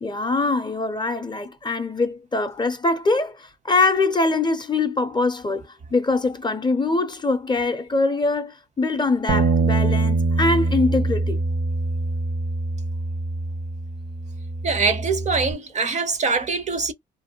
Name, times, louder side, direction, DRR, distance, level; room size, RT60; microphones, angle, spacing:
voice 1, 0.0-11.4 16.3-16.4, left 3 dB, 20° left, 0.5 m, -23 dB
Bass guitar, 9.3-15.5, right 3 dB, 65° right, 0.8 m, -24 dB
voice 2, 14.6-16.9, right 4 dB, 35° right, 0.5 m, -23 dB
2.5 x 2.1 x 2.8 m
cardioid pair, 90°, 20 cm